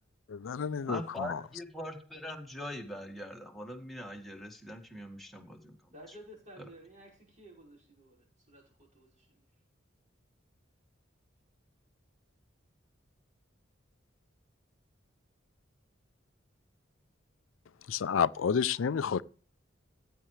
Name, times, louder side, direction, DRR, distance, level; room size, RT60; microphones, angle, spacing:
voice 1, 0.3-1.4 17.9-19.2, left 7 dB, 90° left, 0.4 m, -30 dB
voice 2, 0.9-5.8 6.6-6.7, equal, ahead, 1.8 m, -42 dB
voice 3, 5.9-9.4, right 1 dB, 40° right, 5.4 m, -54 dB
14.5 x 9.1 x 3.2 m
head